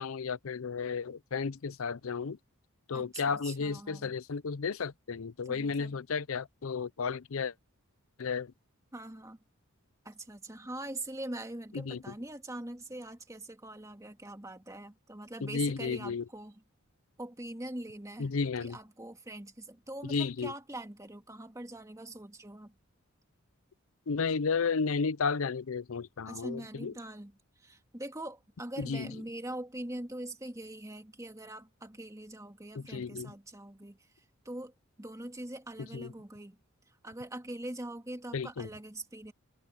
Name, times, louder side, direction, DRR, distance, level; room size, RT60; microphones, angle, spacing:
voice 1, 0.0-2.4 2.9-7.5 8.2-8.5 11.7-12.0 15.4-16.3 18.2-18.8 20.0-20.5 24.1-26.9 28.8-29.1 32.7-33.3 35.9-36.1 38.3-38.7, left 5 dB, 75° left, 0.6 m, -33 dB
voice 2, 2.9-4.1 5.5-5.9 8.9-9.4 10.0-16.6 17.2-18.3 18.6-22.8 26.3-36.6 37.0-39.3, right 1 dB, 15° right, 1.9 m, -43 dB
head